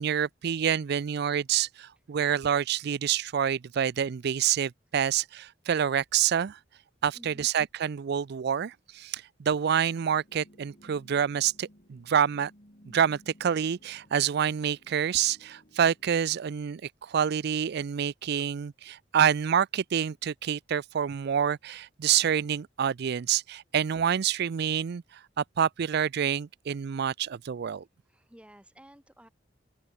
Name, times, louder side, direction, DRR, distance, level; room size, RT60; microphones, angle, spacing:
voice 1, 0.0-6.6 7.0-12.5 12.9-27.8, right 8 dB, 60° right, 0.4 m, -27 dB
voice 2, 7.1-7.5 28.1-29.3, equal, 5° right, 4.3 m, -53 dB
sound 1, 9.9-16.3, equal, 45° left, 7.3 m, -58 dB
open air
head